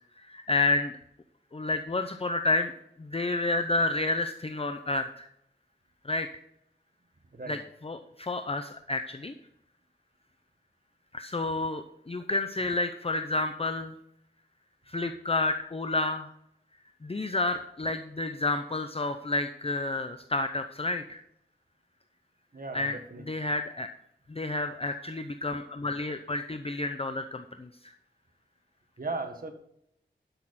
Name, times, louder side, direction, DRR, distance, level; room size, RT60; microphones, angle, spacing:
voice 1, 0.2-0.9 1.5-2.7 3.0-5.3 6.0-6.3 7.5-9.3 11.1-13.9 14.9-16.3 17.0-21.2 22.7-23.0 23.3-23.9 24.3-27.9, left 2 dB, 30° left, 8 dB, 0.7 m, -30 dB
voice 2, 22.5-23.3 29.0-29.5, right 3 dB, 50° right, 4 dB, 1.8 m, -37 dB
12.0 x 6.6 x 4.2 m, 0.75 s
wide cardioid pair, 75°, 19 cm